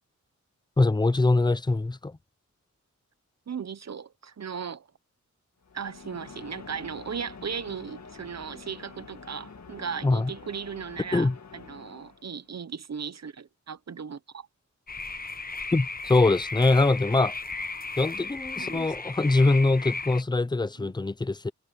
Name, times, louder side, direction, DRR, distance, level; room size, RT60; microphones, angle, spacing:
voice 1, 0.8-2.1 10.0-10.3 11.1-11.3 15.7-17.3 18.0-21.5, left 2 dB, 15° left, 0.5 m, -23 dB
voice 2, 3.5-4.9 5.7-14.5 18.6-18.9 20.8-20.9, right 6 dB, 60° right, 0.8 m, -37 dB
sound 1, 5.6-12.5, left 5 dB, 65° left, 2.0 m, -47 dB
sound 2, 14.9-20.2, left 3 dB, 30° left, 1.1 m, -35 dB
wide cardioid pair, 80°, 30 cm